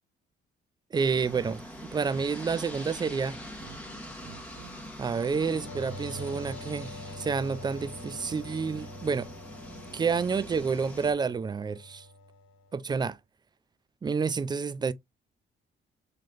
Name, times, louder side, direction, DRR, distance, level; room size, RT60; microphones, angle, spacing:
sound 1, 0.9-11.1, equal, 5° left, 1.4 m, -44 dB
voice 1, 0.9-3.4 5.0-9.3 9.9-12.1 12.7-13.2 14.0-14.9, right 5 dB, 20° right, 0.3 m, -29 dB
sound 2, 2.1-2.3 2.7-3.8 4.1-4.7 5.0-6.9, right 10 dB, 70° right, 0.6 m, -51 dB
sound 3, 5.3-12.8, left 1 dB, 80° left, 1.1 m, -45 dB
3.8 x 3.2 x 2.5 m
cardioid pair, 90°, 20 cm